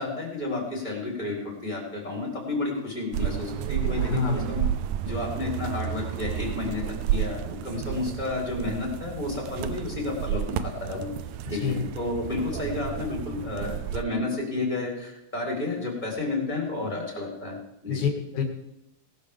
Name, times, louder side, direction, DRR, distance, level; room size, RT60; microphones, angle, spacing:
voice 1, 0.0-4.6 5.0-6.8 7.1-11.1 11.5-17.6 17.8-18.0, left 2 dB, 15° left, -2 dB, 4.3 m, -31 dB
sound 1, 3.1-14.0, right 11 dB, 80° right, 2.1 m, -31 dB
voice 2, 3.9-4.4 11.6-11.8 17.9-18.4, left 6 dB, 70° left, 3 dB, 3.3 m, -27 dB
19.0 x 12.5 x 3.5 m, 0.87 s
omnidirectional pair, 3.5 m